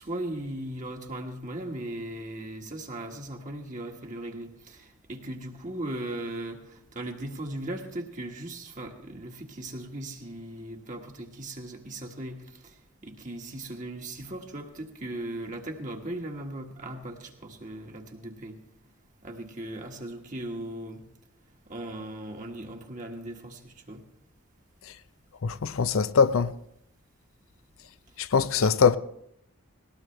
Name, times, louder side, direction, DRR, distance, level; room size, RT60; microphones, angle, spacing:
voice 1, 0.0-18.6 19.2-21.0 21.7-24.0 28.6-28.7, right 1 dB, 40° right, 1.6 m, -38 dB
voice 2, 25.4-26.5 28.2-29.0, left 6 dB, 80° left, 0.6 m, -22 dB
19.0 x 18.5 x 3.3 m
head